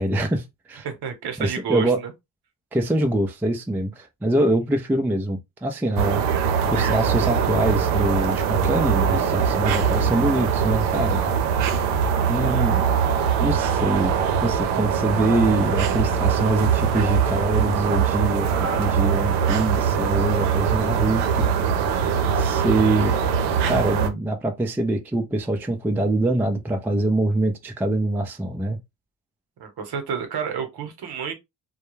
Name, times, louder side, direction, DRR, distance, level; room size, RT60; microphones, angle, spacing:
voice 1, 0.0-0.9 1.4-2.0 2.7-6.3 6.7-11.2 12.3-12.9 13.4-14.1 14.4-21.8 22.3-23.1 23.7-28.8, right 1 dB, 5° right, 0.4 m, -24 dB
voice 2, 0.8-2.1 29.6-31.3, right 6 dB, 55° right, 1.0 m, -30 dB
sound 1, 6.0-24.1, right 7 dB, 90° right, 0.6 m, -22 dB
2.2 x 2.1 x 3.1 m
supercardioid pair, 65°, 46 cm